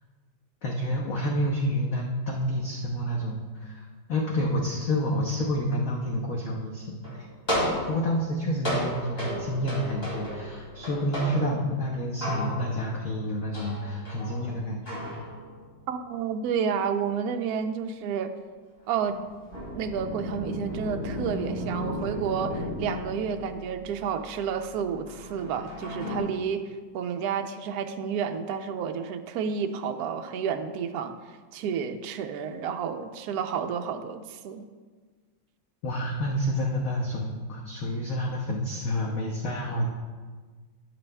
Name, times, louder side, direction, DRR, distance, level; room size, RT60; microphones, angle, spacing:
voice 1, 0.6-7.3 7.9-15.2 35.8-39.9, equal, 60° left, -1 dB, 0.9 m, -29 dB
sound 1, 7.0-13.1 13.5-15.8 19.0-26.2, equal, 30° left, 2.7 m, -34 dB
voice 2, 15.9-18.3 18.9-19.2 19.7-26.6 26.9-31.2 31.5-34.7, right 7 dB, 85° right, 6 dB, 0.8 m, -30 dB
12.0 x 7.6 x 2.2 m, 1.4 s
omnidirectional pair, 2.2 m